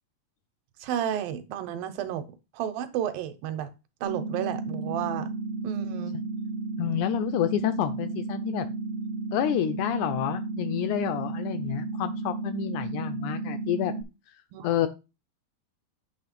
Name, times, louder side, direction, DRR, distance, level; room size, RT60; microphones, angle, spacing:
voice 1, 0.8-2.3 2.5-3.7 4.0-5.3 5.6-6.2 14.5-14.7, right 10 dB, 80° right, 2.5 m, -32 dB
sound 1, 4.0-14.0, right 3 dB, 50° right, 0.6 m, -33 dB
voice 2, 6.8-8.7 9.3-13.9 14.6-14.9, left 11 dB, 85° left, 1.7 m, -29 dB
8.7 x 3.2 x 5.9 m
omnidirectional pair, 4.0 m